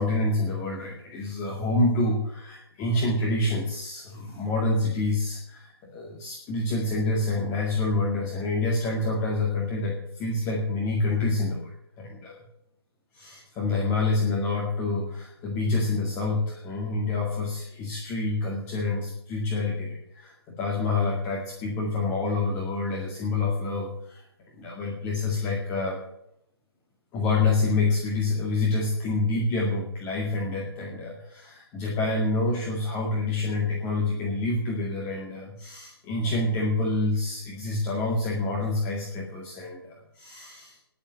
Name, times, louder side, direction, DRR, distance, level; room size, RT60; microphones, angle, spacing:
voice 1, 0.0-12.4 13.1-24.2 24.5-26.0 27.1-40.8, left 2 dB, 15° left, -2 dB, 2.1 m, -27 dB
10.5 x 9.0 x 8.8 m, 0.77 s
figure-of-eight pair, 140°, 14 cm